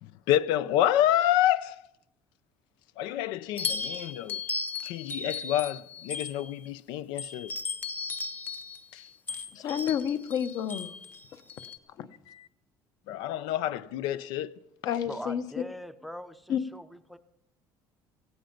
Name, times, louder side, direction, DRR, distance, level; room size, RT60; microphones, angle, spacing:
voice 1, 0.0-1.9 3.0-4.4 4.8-7.5 8.9-9.1 12.3-12.5 13.1-14.5, left 12 dB, 80° left, 0.6 m, -28 dB
sound 1, 3.6-6.7 7.2-11.8, left 4 dB, 25° left, 0.9 m, -36 dB
voice 2, 9.3-11.0 11.3-11.4 12.0-12.1 14.8-15.4 16.5-16.6, left 9 dB, 55° left, 1.0 m, -30 dB
voice 3, 15.1-17.2, equal, ahead, 0.6 m, -42 dB
17.0 x 16.0 x 5.2 m
cardioid pair, 160°, 8 cm